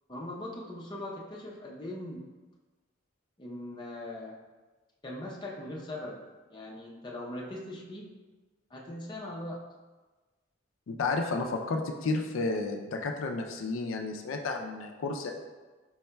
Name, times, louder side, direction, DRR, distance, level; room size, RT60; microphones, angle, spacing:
voice 1, 0.1-2.3 3.4-4.3 5.0-6.2 6.5-8.1 8.7-9.6, left 1 dB, 25° left, -3 dB, 0.6 m, -40 dB
voice 2, 10.9-15.3, left 3 dB, 85° left, 3 dB, 0.4 m, -32 dB
4.7 x 4.2 x 2.2 m, 1.3 s
head